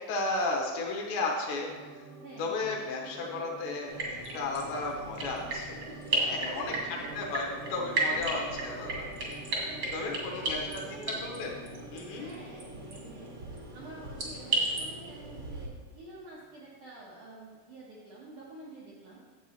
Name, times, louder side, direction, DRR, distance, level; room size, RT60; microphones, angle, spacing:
voice 1, 0.1-1.7 2.0-2.1 2.4-5.9 6.1-6.8 7.2-9.1 9.9-10.8 11.1-11.5 11.9-12.3, left 3 dB, 75° left, 0 dB, 3.1 m, -34 dB
sound 1, 1.7-16.2 16.5-16.6, right 3 dB, 75° right, 2.3 m, -49 dB
voice 2, 2.2-2.6 6.6-7.1 8.2-8.5 9.7-11.3 12.2-13.3 13.7-19.2, right 2 dB, 90° right, -5 dB, 1.7 m, -49 dB
sound 2, 3.9-15.6, right 2 dB, 55° right, 1.2 m, -35 dB
11.5 x 7.8 x 3.0 m, 1.5 s
omnidirectional pair, 5.4 m